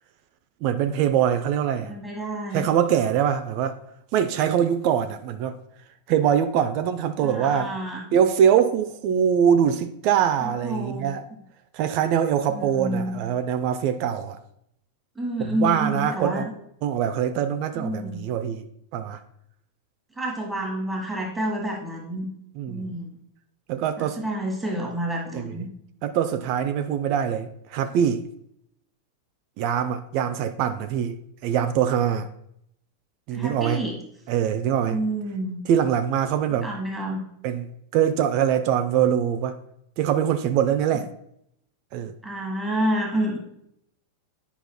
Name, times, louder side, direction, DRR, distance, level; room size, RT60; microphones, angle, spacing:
voice 1, 0.6-1.9 2.5-3.8 4.1-5.6 6.1-7.7 8.1-11.2 11.7-14.4 15.6-16.5 16.8-18.7 18.9-19.2 22.6-22.8 23.7-24.2 25.3-25.4 26.0-28.2 29.6-32.3 33.3-33.8 34.3-35.0 35.7-36.7 37.4-37.7 37.9-39.6 40.0-41.1 41.9-42.1, right 9 dB, 45° right, 0.5 m, -23 dB
voice 2, 1.8-2.7 7.2-8.0 10.4-11.4 12.5-13.2 15.1-16.5 17.8-18.3 20.1-22.3 22.7-23.2 24.0-25.7 33.3-34.0 34.9-35.6 36.6-37.2 42.2-43.4, right 1 dB, 5° right, 1.6 m, -29 dB
10.0 x 5.6 x 2.2 m
figure-of-eight pair, 90°, 0 cm